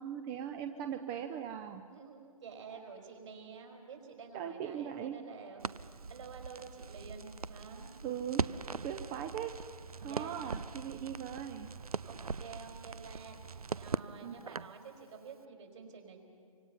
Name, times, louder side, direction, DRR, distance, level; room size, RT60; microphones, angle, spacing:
voice 1, 0.0-1.8 4.3-5.2 8.0-8.4 8.8-9.6 10.0-11.7 14.2-14.5, right 9 dB, 20° right, 7 dB, 0.7 m, -39 dB
voice 2, 1.9-7.9 10.1-10.3 12.0-16.2, right 5 dB, 55° right, 2 dB, 4.8 m, -50 dB
Crackle, 5.6-14.8, right 5 dB, 80° right, 0.6 m, -41 dB
25.0 x 25.0 x 5.7 m, 2.3 s
figure-of-eight pair, 135°, 19 cm